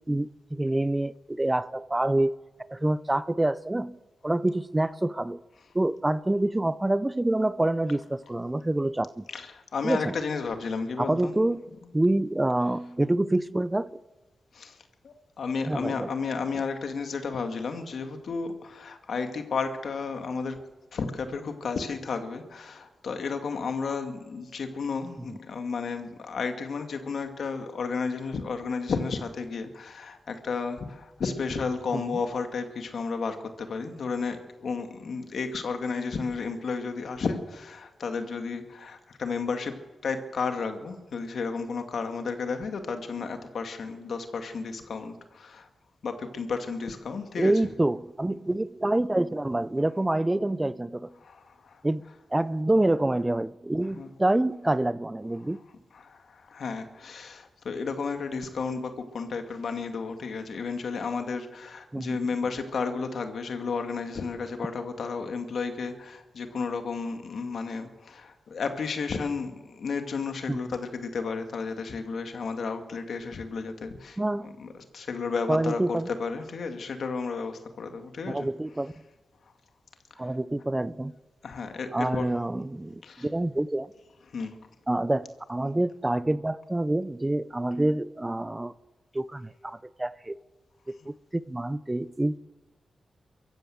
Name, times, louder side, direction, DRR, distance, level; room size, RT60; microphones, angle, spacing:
voice 1, 0.1-2.4 2.7-4.0 4.2-5.4 5.7-9.3 9.8-10.1 11.0-11.7 11.9-14.0 15.7-16.1 25.3-25.4 31.9-32.0 47.4-51.1 51.8-52.0 52.3-55.6 61.9-62.2 70.5-70.6 74.2-74.5 75.5-76.1 78.3-78.9 80.2-81.2 81.9-83.9 84.9-88.7 89.1-90.4 90.9-92.4, right 1 dB, 20° right, 0.6 m, -27 dB
voice 2, 9.3-11.4 14.5-14.8 15.0-20.6 20.9-39.7 40.0-45.7 46.0-47.5 51.2-51.8 53.9-54.1 55.9-78.5 81.4-82.3 83.0-83.3 84.3-84.5, left 4 dB, 75° left, 2.3 m, -32 dB
23.5 x 14.5 x 7.9 m
cardioid pair, 55°, 0 cm